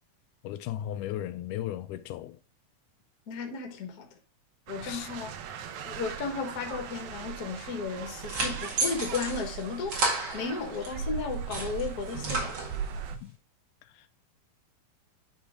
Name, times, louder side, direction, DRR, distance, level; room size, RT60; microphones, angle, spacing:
voice 1, 0.4-2.4 4.8-5.1 13.1-13.3, left 12 dB, 85° left, 2.0 m, -36 dB
voice 2, 3.3-4.1 4.7-5.3 5.8-9.9 10.3-12.6, left 5 dB, 45° left, 1.3 m, -34 dB
sound 1, 4.7-13.2, right 8 dB, 75° right, 2.0 m, -39 dB
sound 2, 7.9-10.9 11.3-13.0, right 3 dB, 45° right, 2.4 m, -33 dB
10.0 x 3.5 x 3.6 m
omnidirectional pair, 3.6 m